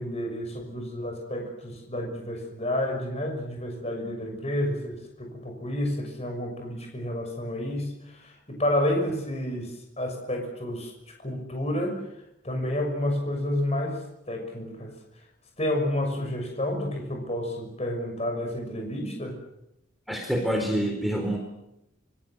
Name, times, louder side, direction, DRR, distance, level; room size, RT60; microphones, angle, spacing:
voice 1, 0.0-12.1 12.4-14.9 15.6-19.4, left 1 dB, 30° left, 3 dB, 6.3 m, -30 dB
voice 2, 20.1-21.4, equal, ahead, 2 dB, 4.2 m, -26 dB
26.5 x 24.0 x 8.0 m, 0.84 s
head